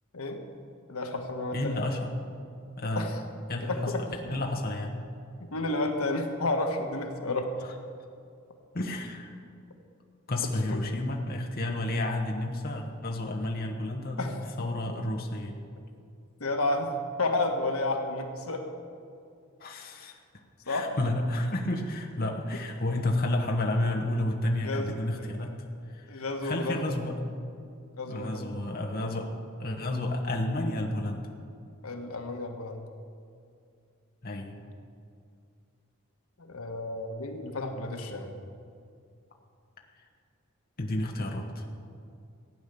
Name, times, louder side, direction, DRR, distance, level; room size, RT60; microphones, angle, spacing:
voice 1, 0.9-1.9 2.9-3.2 3.6-4.0 5.4-7.5 10.7-10.8 14.2-14.4 14.9-15.0 16.4-18.8 20.7-20.9 24.6-25.5 26.1-27.0 28.0-28.5 31.8-32.9 36.4-38.3, left 2 dB, 85° left, 4 dB, 1.4 m, -31 dB
voice 2, 1.5-2.1 2.8-3.1 3.5-3.9 4.3-4.9 8.7-9.3 10.3-14.3 14.6-15.6 19.6-20.1 20.6-25.5 25.9-27.1 28.1-29.3 29.6-31.2 34.2-34.6 40.8-41.7, left 1 dB, 45° left, 2 dB, 1.2 m, -31 dB
15.5 x 9.2 x 6.9 m, 2.4 s
head